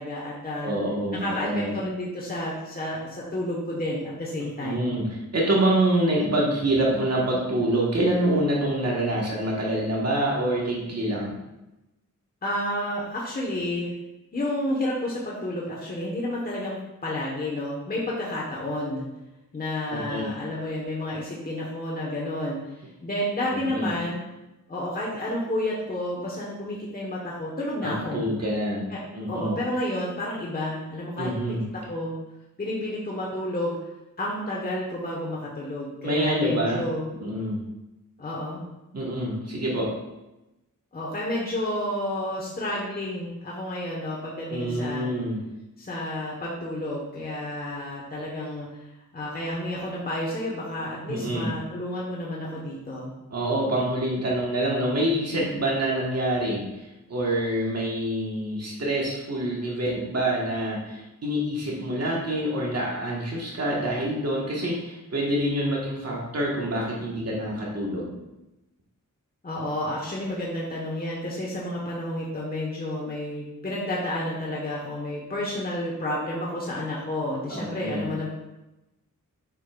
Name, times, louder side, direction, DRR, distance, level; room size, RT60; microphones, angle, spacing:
voice 1, 0.0-0.7 1.1-5.0 12.4-13.9 14.3-19.1 19.5-24.2 24.7-28.2 28.9-29.0 29.3-31.3 31.9-32.1 32.6-33.8 34.2-37.1 38.2-38.6 40.9-45.1 45.8-48.9 49.1-53.1 69.4-78.3, left 1 dB, 30° left, -4 dB, 1.2 m, -30 dB
voice 2, 0.6-1.7 4.6-11.4 19.9-20.3 23.5-23.9 27.8-28.9 29.1-29.6 31.2-31.6 36.0-36.8 37.2-37.6 38.9-39.9 44.5-45.4 51.1-51.5 53.3-68.1 77.5-78.1, right 1 dB, 50° right, -4 dB, 1.5 m, -26 dB
7.1 x 5.5 x 2.4 m, 0.96 s
wide cardioid pair, 95°, 32 cm